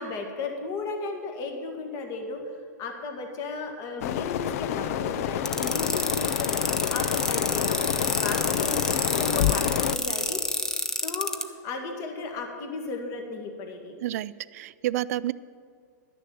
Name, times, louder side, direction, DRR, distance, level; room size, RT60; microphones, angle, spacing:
voice 1, 0.0-2.5 2.8-6.5 6.9-10.4 11.0-14.0, left 3 dB, 35° left, 3 dB, 1.7 m, -35 dB
sound 1, 4.0-10.0, left 11 dB, 55° left, 0.4 m, -28 dB
sound 2, 5.5-11.4, left 2 dB, 5° left, 0.5 m, -28 dB
voice 2, 14.0-15.3, right 14 dB, 55° right, 18 dB, 0.3 m, -29 dB
11.5 x 6.7 x 7.7 m, 2.2 s
hypercardioid pair, 140°, 10 cm